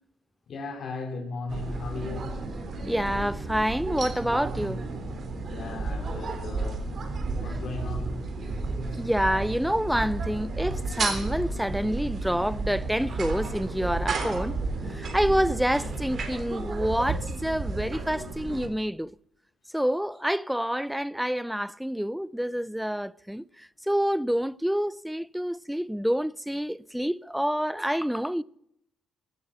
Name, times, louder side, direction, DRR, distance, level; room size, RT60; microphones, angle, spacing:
voice 1, 0.5-2.3 5.4-6.8 7.4-8.2, left 3 dB, 60° left, 3.2 m, -36 dB
sound 1, 1.5-18.7, right 3 dB, 50° right, 3.6 m, -32 dB
voice 2, 2.9-4.8 8.9-14.6 14.9-19.1 19.7-28.4, equal, ahead, 0.5 m, -28 dB
17.0 x 9.9 x 7.9 m
cardioid pair, 90°, 0 cm